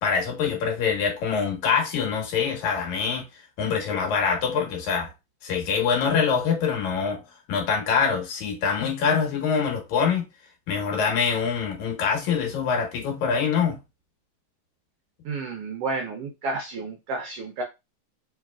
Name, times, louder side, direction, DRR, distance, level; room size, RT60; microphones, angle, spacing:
voice 1, 0.0-3.3 3.6-5.1 5.4-7.2 7.5-10.3 10.7-13.8, left 6 dB, 75° left, 2.6 m, -24 dB
voice 2, 15.2-17.6, right 3 dB, 85° right, 1.3 m, -31 dB
4.9 x 3.1 x 2.3 m
omnidirectional pair, 3.4 m